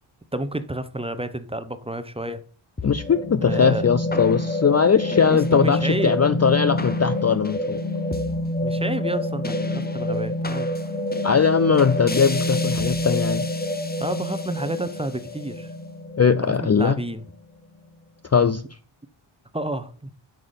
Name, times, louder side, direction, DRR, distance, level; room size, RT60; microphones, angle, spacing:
voice 1, 0.3-2.4 3.5-3.9 5.3-6.2 8.6-10.7 14.0-15.7 16.4-17.2 19.5-19.9, right 1 dB, 10° right, 0.8 m, -30 dB
voice 2, 2.8-7.8 11.2-13.5 16.2-17.0 18.2-18.6, left 6 dB, 35° left, 0.4 m, -20 dB
sound 1, 2.8-17.2, left 1 dB, 20° left, 0.8 m, -27 dB
8.2 x 5.9 x 5.1 m
wide cardioid pair, 80°, 50 cm